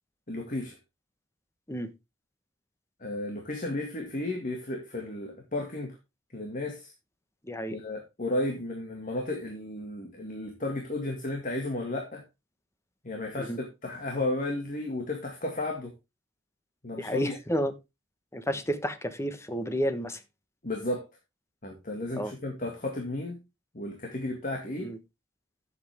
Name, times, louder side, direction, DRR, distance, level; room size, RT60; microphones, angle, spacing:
voice 1, 0.3-0.8 3.0-6.0 6.3-6.9 7.7-12.2 13.0-15.9 16.8-17.4 20.6-21.1 21.6-23.4 23.7-24.9, left 1 dB, 45° left, 2.1 m, -33 dB
voice 2, 7.5-7.8 13.4-13.6 17.0-17.7 18.3-20.2 22.1-22.3 24.8-25.0, equal, 15° left, 1.2 m, -31 dB
11.5 x 7.7 x 3.5 m
head